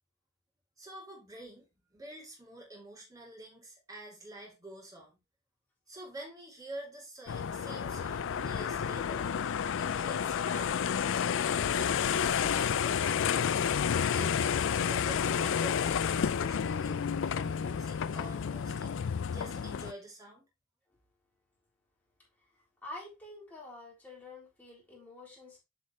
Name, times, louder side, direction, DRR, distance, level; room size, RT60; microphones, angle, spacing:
voice 1, 0.8-5.2 5.9-9.3 9.8-10.8 11.5-13.5 14.1-17.0 17.3-18.9 19.3-20.5, right 1 dB, 15° right, 2.9 m, -48 dB
sound 1, 7.3-19.9, left 7 dB, 60° left, 0.4 m, -30 dB
voice 2, 22.8-25.6, left 2 dB, 10° left, 3.7 m, -47 dB
8.6 x 4.9 x 3.1 m
head